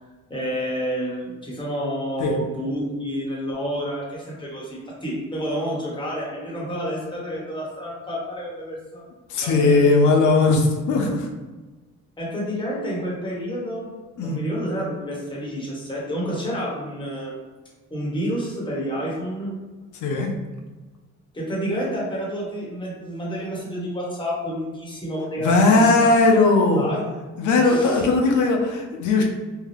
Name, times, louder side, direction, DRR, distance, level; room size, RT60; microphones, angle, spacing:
voice 1, 0.3-9.0 9.4-10.1 12.2-13.9 14.2-17.3 17.9-19.5 21.3-26.1 26.7-27.0 27.6-28.0, equal, 15° left, -5 dB, 1.2 m, -29 dB
voice 2, 9.3-11.3 14.2-14.4 20.0-20.3 25.4-26.9 27.4-29.2, left 3 dB, 75° left, 2 dB, 0.6 m, -18 dB
2.7 x 2.3 x 3.3 m, 1.2 s
cardioid pair, 90°, 30 cm